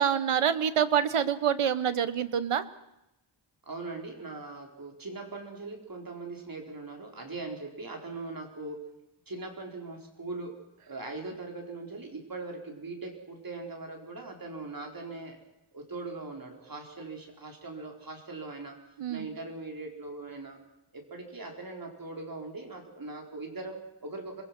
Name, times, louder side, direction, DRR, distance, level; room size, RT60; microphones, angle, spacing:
voice 1, 0.0-2.6 19.0-19.3, right 8 dB, 85° right, 13 dB, 1.4 m, -26 dB
voice 2, 3.6-8.9 9.3-10.6 10.8-15.4 15.7-18.8 19.1-20.6 20.9-24.4, right 3 dB, 40° right, 2 dB, 4.7 m, -40 dB
27.0 x 21.5 x 6.2 m, 0.88 s
wide cardioid pair, 115°, 50 cm